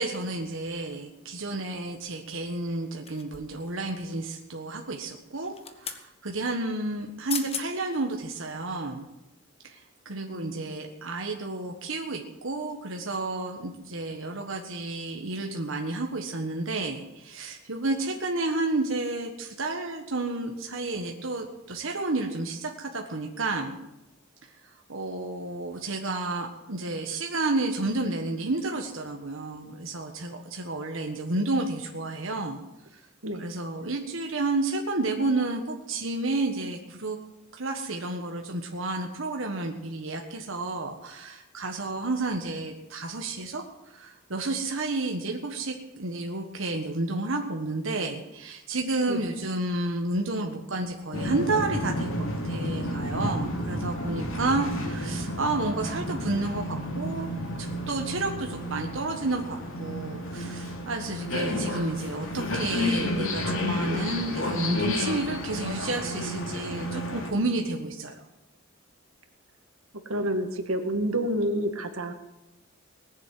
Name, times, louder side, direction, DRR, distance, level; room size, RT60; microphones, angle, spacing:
voice 1, 0.0-9.1 9.6-23.8 24.4-24.5 24.9-32.6 32.9-33.0 33.4-37.2 37.5-43.6 43.9-52.1 52.4-57.3 57.6-68.3, right 2 dB, 65° right, 2 dB, 1.5 m, -31 dB
sound 1, 3.1-3.6 5.4-6.0 7.0-7.1 7.3-7.7 8.2-8.4, left 6 dB, 30° left, 1.3 m, -36 dB
sound 2, 51.1-67.3, left 1 dB, 70° left, 3.1 m, -31 dB
voice 2, 70.1-72.1, right 1 dB, 85° right, 6 dB, 1.9 m, -28 dB
19.5 x 7.4 x 9.5 m, 0.95 s
head